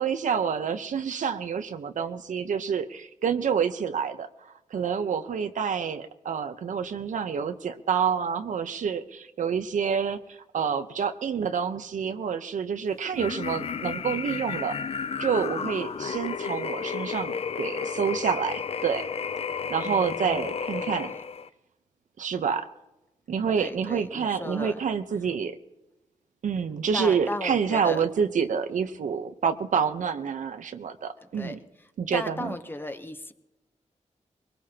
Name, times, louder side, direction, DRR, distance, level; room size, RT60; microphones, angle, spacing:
voice 1, 0.0-14.8 15.2-19.1 19.7-21.1 22.2-22.7 23.3-25.6 26.4-31.6 32.0-32.6, right 7 dB, 90° right, 8 dB, 1.0 m, -28 dB
sound 1, 13.1-21.5, left 6 dB, 50° left, 0.5 m, -32 dB
voice 2, 19.8-20.5 20.7-21.2 23.6-24.8 26.9-28.0 31.3-31.6 32.1-33.3, left 2 dB, 15° left, 7 dB, 1.0 m, -36 dB
23.0 x 20.0 x 2.9 m, 0.98 s
wide cardioid pair, 130°, 13 cm